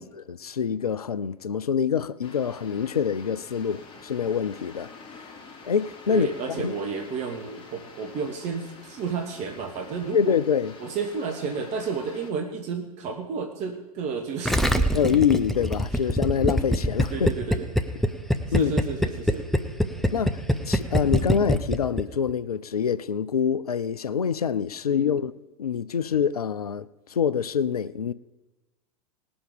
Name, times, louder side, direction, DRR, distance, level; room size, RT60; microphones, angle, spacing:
voice 1, 0.0-4.9 5.6-6.3 6.6-6.7 10.1-10.7 14.9-17.3 18.5-18.7 20.1-25.3 25.6-28.1, left 7 dB, 80° left, 0.5 m, -25 dB
sound 1, 2.2-12.3, left 4 dB, 25° left, 2.5 m, -47 dB
voice 2, 6.1-10.4 10.8-15.2 17.1-17.7 18.5-19.5 24.9-25.1, right 5 dB, 40° right, 1.5 m, -32 dB
Gurgling, 14.4-22.3, equal, ahead, 0.8 m, -23 dB
19.0 x 7.1 x 5.2 m
figure-of-eight pair, 90°, 19 cm